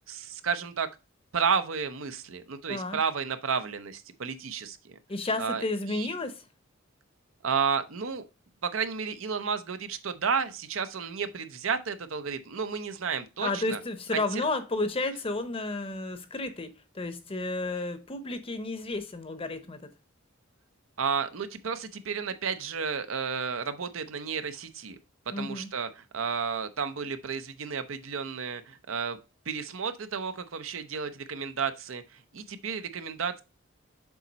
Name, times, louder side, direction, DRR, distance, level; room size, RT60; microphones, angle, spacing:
voice 1, 0.1-0.9 1.3-4.9 5.4-6.1 7.4-8.2 8.6-13.8 14.3-14.4 21.0-25.0 25.4-29.2 29.5-33.4, right 6 dB, 75° right, 0.7 m, -32 dB
voice 2, 2.7-3.0 5.1-6.5 13.4-19.9 25.3-25.7, left 2 dB, 30° left, 0.8 m, -32 dB
7.0 x 4.1 x 4.0 m
head